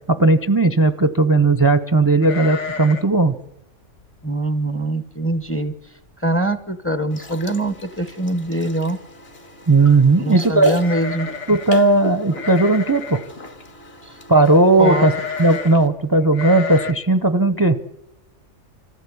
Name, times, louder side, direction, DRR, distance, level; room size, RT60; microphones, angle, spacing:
voice 1, 0.1-3.4 9.7-10.7 11.5-13.2 14.3-15.1 15.4-17.8, right 2 dB, 20° right, 10 dB, 0.7 m, -16 dB
sound 1, 2.2-3.2 3.4-3.5 4.0-4.3 4.8-4.9 5.2-5.7 6.1-6.2 7.3-7.4 7.7-8.1 10.8-11.8 12.3-13.3 14.8-15.8 16.3-16.9, left 6 dB, 70° left, 1.4 m, -30 dB
voice 2, 4.2-5.7 6.2-9.0 10.2-11.3 14.8-15.1, right 1 dB, 10° left, 11 dB, 0.8 m, -23 dB
sound 2, 7.1-15.9, left 3 dB, 55° left, 1.8 m, -38 dB
26.0 x 15.0 x 8.5 m, 0.92 s
omnidirectional pair, 1.3 m